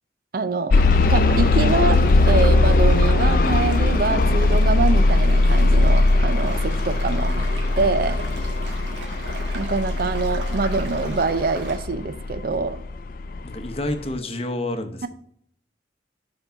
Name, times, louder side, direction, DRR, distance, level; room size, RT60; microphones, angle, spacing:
voice 1, 0.3-0.7 1.1-7.5 7.8-8.2 9.5-12.8, right 3 dB, 55° right, 12 dB, 0.5 m, -25 dB
sound 1, 0.7-12.6 13.3-13.4 13.9-14.0, left 2 dB, 50° left, 0.4 m, -19 dB
sound 2, 0.7-11.8, right 2 dB, 85° right, 1.6 m, -37 dB
voice 2, 13.4-15.1, left 1 dB, 35° left, 7 dB, 0.8 m, -29 dB
5.7 x 5.4 x 5.6 m, 0.67 s
head